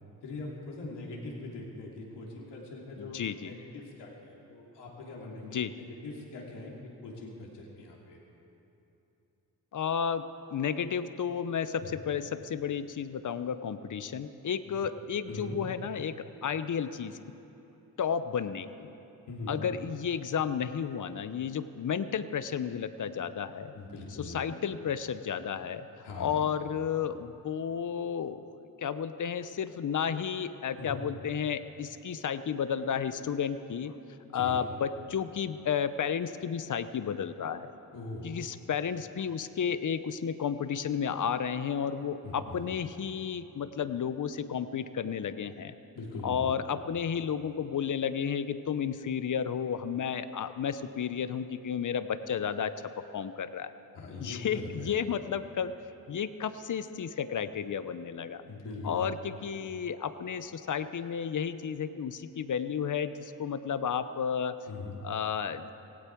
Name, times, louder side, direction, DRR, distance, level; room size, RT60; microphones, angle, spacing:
voice 1, 0.2-6.7 7.0-8.2 11.8-11.9 14.6-14.7 15.3-15.6 19.3-19.6 23.7-24.4 26.0-26.4 30.8-30.9 34.3-34.6 37.9-38.2 42.2-42.8 45.9-46.5 53.9-54.9 58.5-59.0 64.7-64.9, left 2 dB, 80° left, -2 dB, 3.1 m, -42 dB
voice 2, 3.0-3.5 5.4-5.7 9.7-10.2 10.5-17.4 18.0-18.9 19.5-23.7 24.2-34.0 34.3-37.7 38.2-45.7 46.2-53.7 54.2-55.7 56.1-58.4 58.8-64.6 65.0-65.7, left 7 dB, 50° left, 13 dB, 0.9 m, -32 dB
17.0 x 17.0 x 4.7 m, 3.0 s
supercardioid pair, 55°, 41 cm